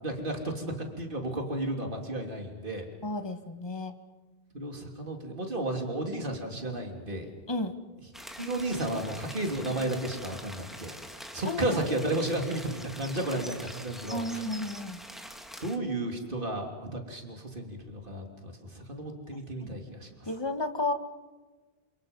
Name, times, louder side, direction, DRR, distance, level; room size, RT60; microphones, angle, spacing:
voice 1, 0.0-2.9 4.5-7.3 8.4-11.0 11.3-14.4 15.6-20.3, right 1 dB, 55° right, 3 dB, 3.4 m, -33 dB
voice 2, 3.0-3.9 7.5-7.7 11.5-11.8 14.1-15.0 20.3-20.9, left 2 dB, 25° left, 7 dB, 1.6 m, -32 dB
sound 1, 8.1-15.8, equal, ahead, 2.0 m, -44 dB
28.5 x 27.5 x 5.4 m, 1.2 s
omnidirectional pair, 1.0 m